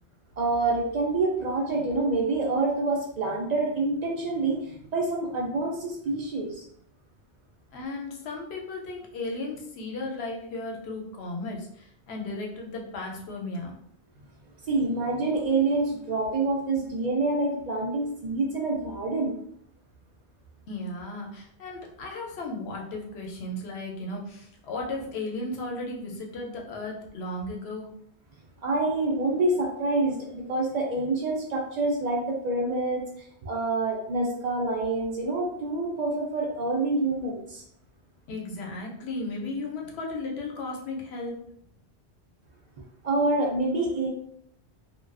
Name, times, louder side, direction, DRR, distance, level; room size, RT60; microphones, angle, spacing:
voice 1, 0.4-6.6 14.7-19.4 28.6-33.0 33.4-37.6 43.0-44.1, right 2 dB, 60° right, -1 dB, 0.4 m, -27 dB
voice 2, 7.7-13.8 20.7-27.9 38.3-41.4, left 2 dB, 75° left, 0 dB, 0.8 m, -35 dB
2.3 x 2.2 x 2.4 m, 0.69 s
omnidirectional pair, 1.1 m